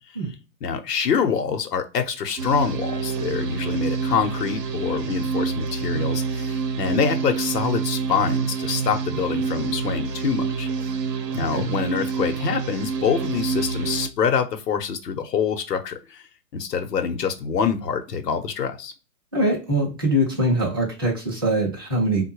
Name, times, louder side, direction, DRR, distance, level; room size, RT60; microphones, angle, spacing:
voice 1, 0.6-10.7 11.3-16.2 16.5-18.9, left 6 dB, 80° left, 6 dB, 0.8 m, -25 dB
sound 1, 2.4-14.1, right 5 dB, 85° right, 0.7 m, -27 dB
voice 2, 11.3-11.6 19.3-22.2, right 1 dB, 15° right, -6 dB, 0.4 m, -23 dB
3.7 x 2.2 x 3.0 m, 0.32 s
hypercardioid pair, 145°, 48 cm